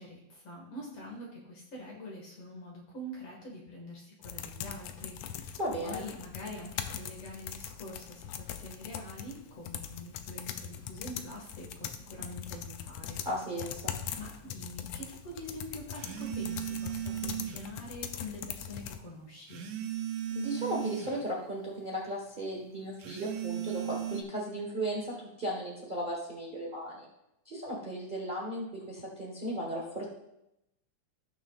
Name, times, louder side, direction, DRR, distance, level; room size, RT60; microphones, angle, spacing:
voice 1, 0.0-13.2 14.2-19.6, left 1 dB, 50° left, -2 dB, 2.6 m, -45 dB
sound 1, 4.2-19.0, left 9 dB, 75° left, 1.6 m, -41 dB
voice 2, 5.6-6.1 13.2-14.0 20.3-27.1 27.4-30.1, right 1 dB, 45° right, -2 dB, 0.6 m, -36 dB
sound 2, 14.0-14.2 16.0-17.7 19.5-21.2 23.0-24.2, right 11 dB, 70° right, 1.8 m, -36 dB
17.0 x 6.5 x 2.4 m, 0.85 s
omnidirectional pair, 3.4 m